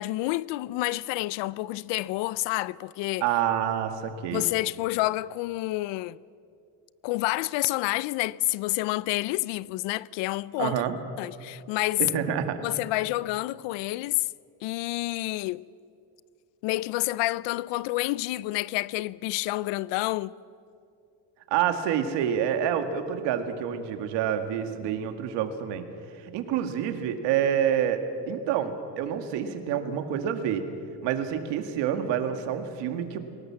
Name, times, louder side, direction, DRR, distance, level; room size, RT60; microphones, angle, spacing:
voice 1, 0.0-3.3 4.3-6.2 7.0-10.8 11.2-12.0 12.6-14.3 14.6-15.7 16.6-20.3, left 19 dB, 85° left, 0.6 m, -29 dB
voice 2, 3.2-4.4 10.6-11.0 12.0-12.6 21.5-25.8 26.2-30.6 31.0-33.2, right 9 dB, 75° right, 2.1 m, -27 dB
23.0 x 18.5 x 7.4 m
cardioid pair, 175°, 42 cm